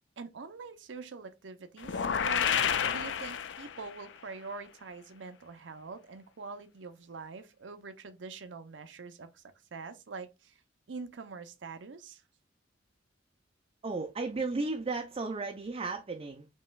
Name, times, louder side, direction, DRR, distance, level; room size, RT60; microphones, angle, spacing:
voice 1, 0.2-9.4 9.7-10.6 10.9-12.2, right 4 dB, 75° right, 0.6 m, -44 dB
sound 1, 1.8-4.0, left 7 dB, 70° left, 0.4 m, -30 dB
voice 2, 13.8-16.5, right 3 dB, 30° right, 0.5 m, -34 dB
5.4 x 3.0 x 2.2 m
head